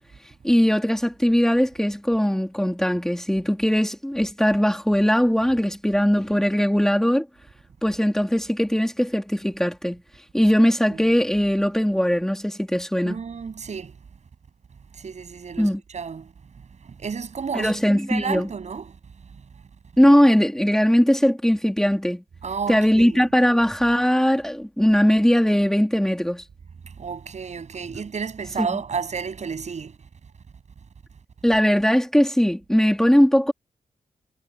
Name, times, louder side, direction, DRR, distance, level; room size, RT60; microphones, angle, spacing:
voice 1, 0.4-7.3 7.8-10.0 10.3-13.2 15.6-15.8 17.5-18.5 20.0-22.2 22.7-26.4 28.6-28.8 31.4-33.5, equal, 5° left, 3.1 m, -20 dB
voice 2, 13.0-13.9 15.0-16.3 16.8-18.9 22.4-23.2 27.0-29.9, right 6 dB, 60° right, 7.7 m, -31 dB
wide cardioid pair, 110°, 13 cm